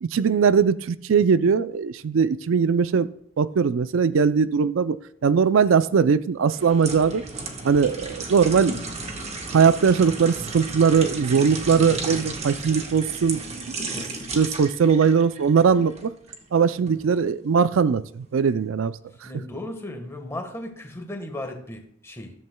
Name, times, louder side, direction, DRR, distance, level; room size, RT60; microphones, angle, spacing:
voice 1, 0.0-3.1 3.4-5.0 5.2-7.2 7.6-8.8 9.5-13.7 14.3-16.1 16.5-19.0, right 6 dB, 85° right, 15 dB, 0.4 m, -20 dB
sound 1, 6.5-16.4 16.9-17.0, right 3 dB, 35° right, 1.2 m, -34 dB
voice 2, 19.2-22.3, left 1 dB, 15° left, 4 dB, 1.3 m, -36 dB
14.0 x 11.0 x 2.2 m, 0.66 s
head